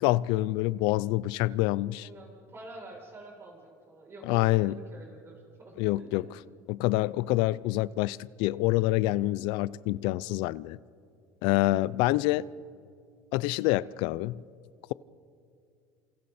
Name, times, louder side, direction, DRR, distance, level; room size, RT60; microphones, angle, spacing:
voice 1, 0.0-2.1 4.2-4.8 5.8-6.2 6.7-10.8 11.4-12.5 13.3-14.4, left 18 dB, 75° left, 0.5 m, -26 dB
voice 2, 2.0-6.2, right 2 dB, 30° right, 7.4 m, -48 dB
28.5 x 27.5 x 4.3 m
supercardioid pair, 110°, 8 cm